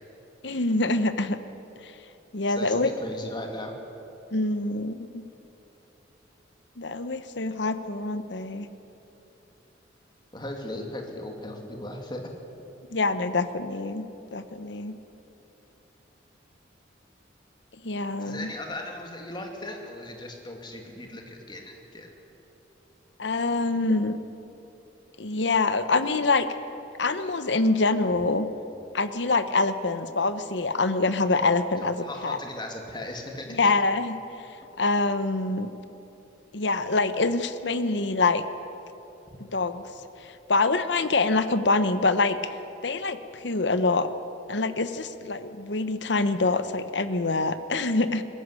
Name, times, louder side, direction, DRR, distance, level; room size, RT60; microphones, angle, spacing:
voice 1, 0.4-1.4 1.8-1.9 2.3-2.9 4.3-5.2 6.8-8.7 12.9-14.0 14.3-14.9 17.8-18.5 23.2-24.2 25.2-26.5 27.0-28.5 28.9-32.4 33.5-34.2 34.8-35.7 36.5-38.4 39.5-39.8 40.2-42.4 42.8-44.1 44.5-48.2, left 3 dB, 65° left, 11 dB, 1.0 m, -25 dB
voice 2, 2.5-3.7 10.3-12.3 18.2-22.1 32.0-33.7 39.3-39.4, left 1 dB, 25° left, 3 dB, 2.5 m, -37 dB
20.5 x 15.0 x 9.9 m, 2.9 s
head